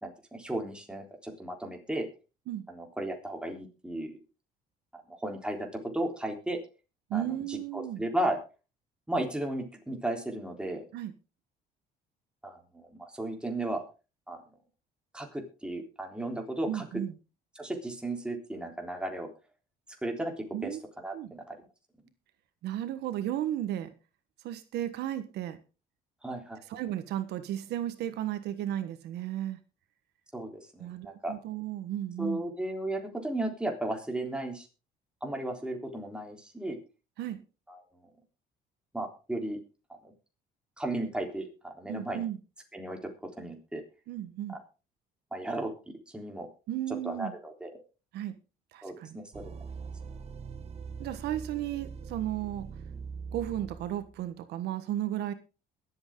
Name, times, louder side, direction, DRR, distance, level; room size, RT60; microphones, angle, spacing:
voice 1, 0.0-2.1 2.7-4.2 4.9-6.6 7.1-8.4 9.1-10.9 12.4-13.8 14.3-14.4 15.1-16.9 17.6-19.3 20.0-21.6 26.2-26.6 30.3-31.3 32.2-34.7 35.2-36.8 37.7-37.8 38.9-39.6 39.9-40.1 40.8-42.3 42.7-43.1 43.4-43.8 44.5-44.6 45.3-45.7 46.1-46.5 47.0-47.7 48.8-49.5, right 1 dB, 5° right, 2 dB, 3.7 m, -35 dB
voice 2, 7.1-8.0 10.9-11.1 16.7-17.1 20.5-20.8 21.1-21.3 22.6-23.9 24.4-25.6 26.7-29.6 30.8-32.4 37.2-37.4 41.9-42.4 44.1-44.6 46.7-47.3 48.1-48.3 48.7-49.2 51.0-52.7 53.3-55.3, right 12 dB, 80° right, 11 dB, 1.4 m, -34 dB
sound 1, 49.3-54.3, right 5 dB, 40° right, 1.6 m, -42 dB
22.0 x 8.1 x 3.8 m, 0.33 s
cardioid pair, 110°, 17 cm